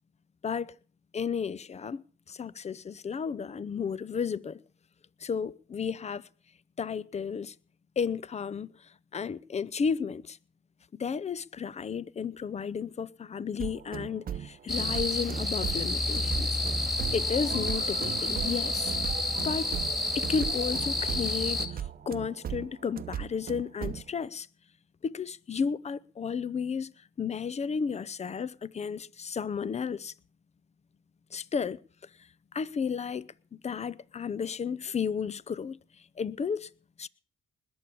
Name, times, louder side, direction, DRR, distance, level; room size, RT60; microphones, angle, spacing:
voice 1, 0.4-0.7 1.1-2.0 2.3-4.6 5.2-6.3 6.8-7.5 8.0-8.7 9.1-10.4 10.9-16.6 17.1-19.0 19.4-19.7 20.1-24.5 25.0-26.9 27.2-30.1 31.3-31.8 32.5-33.3 33.6-35.8 36.2-36.7 37.0-37.1, left 6 dB, 35° left, 0.7 m, -33 dB
sound 1, 13.6-24.1, right 9 dB, 45° right, 0.8 m, -38 dB
sound 2, 14.7-21.7, left 2 dB, ahead, 2.4 m, -30 dB
20.5 x 7.1 x 8.4 m
cardioid pair, 90°, 20 cm